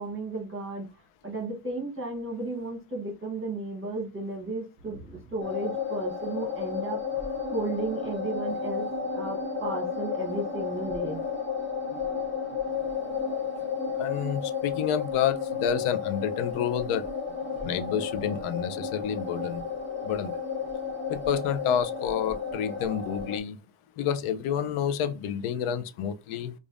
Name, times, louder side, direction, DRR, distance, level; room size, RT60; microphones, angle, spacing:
voice 1, 0.0-11.2, right 2 dB, 25° right, 1.0 m, -34 dB
sound 1, 5.4-23.4, left 6 dB, 25° left, 0.7 m, -32 dB
voice 2, 14.0-17.0 17.6-19.6 20.0-20.3 21.1-23.6 24.0-26.5, left 8 dB, 80° left, 0.6 m, -29 dB
5.1 x 2.5 x 2.4 m
cardioid pair, 180°, 49 cm